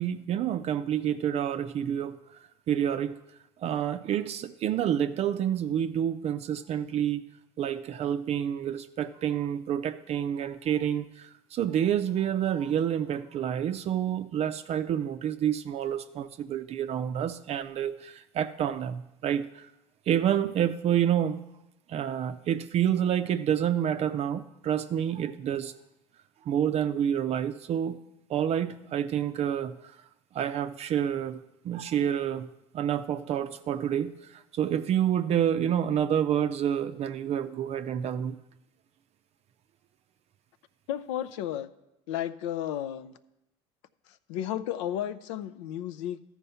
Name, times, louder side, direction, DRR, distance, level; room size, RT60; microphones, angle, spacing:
voice 1, 0.0-2.2 2.7-3.2 3.6-7.2 7.6-19.7 20.1-21.4 21.9-25.7 26.5-28.0 28.3-29.9 30.3-32.5 32.7-38.4, right 9 dB, 45° right, 10 dB, 0.5 m, -28 dB
voice 2, 40.9-41.7 42.1-43.1 44.3-46.3, left 11 dB, 80° left, 13 dB, 0.5 m, -33 dB
13.5 x 4.5 x 5.6 m, 0.89 s
supercardioid pair, 90°, 15 cm